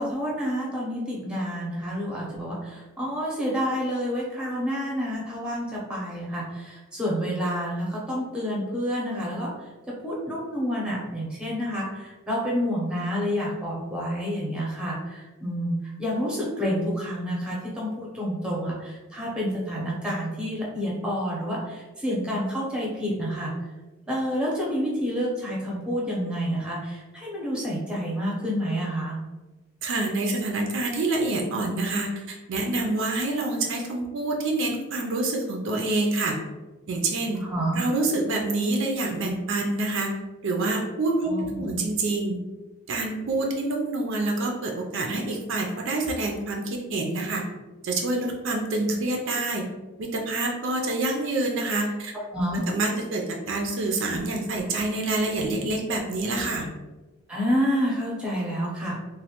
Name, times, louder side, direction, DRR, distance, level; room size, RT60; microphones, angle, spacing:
voice 1, 0.0-9.7 10.0-23.5 24.1-29.2 37.5-37.8 41.2-41.8 52.3-52.6 57.3-59.0, equal, 5° right, -5 dB, 0.7 m, -29 dB
voice 2, 29.8-36.4 36.9-37.4 37.8-40.2 40.4-42.4 42.9-47.4 47.8-49.6 50.0-52.1 52.7-56.7, right 2 dB, 60° right, 1 dB, 0.4 m, -27 dB
3.1 x 2.1 x 2.8 m, 1.2 s
head